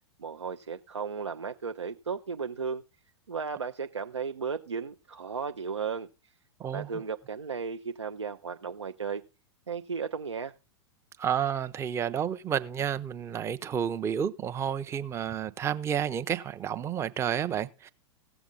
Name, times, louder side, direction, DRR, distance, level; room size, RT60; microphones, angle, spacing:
voice 1, 0.2-2.8 3.3-6.1 6.7-9.2 9.7-10.5, right 5 dB, 85° right, 0.5 m, -35 dB
voice 2, 11.2-17.9, right 8 dB, 20° right, 0.5 m, -30 dB
16.5 x 7.0 x 3.7 m
figure-of-eight pair, 95°, 15 cm